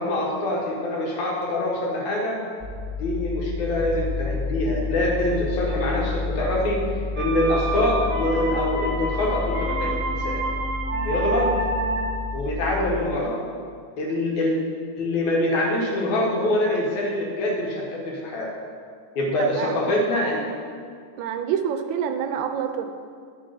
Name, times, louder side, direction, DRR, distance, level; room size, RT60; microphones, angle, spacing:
voice 1, 0.0-2.4 3.0-6.8 7.2-10.4 11.0-11.5 12.3-13.5 14.0-14.6 15.0-18.5 19.2-20.5, left 1 dB, 80° left, -2 dB, 2.9 m, -24 dB
sound 1, 2.6-13.0, left 3 dB, 30° left, 1.4 m, -30 dB
sound 2, 7.2-12.3, right 2 dB, 55° right, 1.4 m, -29 dB
voice 2, 19.4-19.9 21.2-22.9, right 8 dB, 80° right, 7 dB, 1.9 m, -27 dB
11.5 x 6.9 x 4.9 m, 2.1 s
omnidirectional pair, 3.4 m